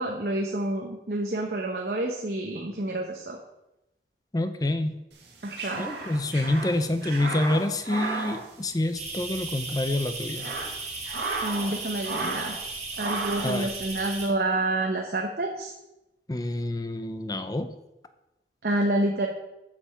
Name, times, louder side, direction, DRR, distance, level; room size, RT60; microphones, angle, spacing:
voice 1, 0.0-3.4 5.4-5.9 11.4-12.6 13.0-15.7 18.6-19.3, right 1 dB, 60° right, 2 dB, 0.9 m, -28 dB
voice 2, 4.3-5.0 5.8-10.5 13.4-13.7 16.3-17.7, left 1 dB, 20° left, 10 dB, 0.5 m, -27 dB
sound 1, 5.2-9.3 9.5-9.7 10.2-11.7 12.0-12.6 13.0-13.6, right 3 dB, 80° right, 1.8 m, -34 dB
sound 2, 9.0-14.3, right 3 dB, 40° right, 2.0 m, -36 dB
7.2 x 6.9 x 5.6 m, 0.92 s
head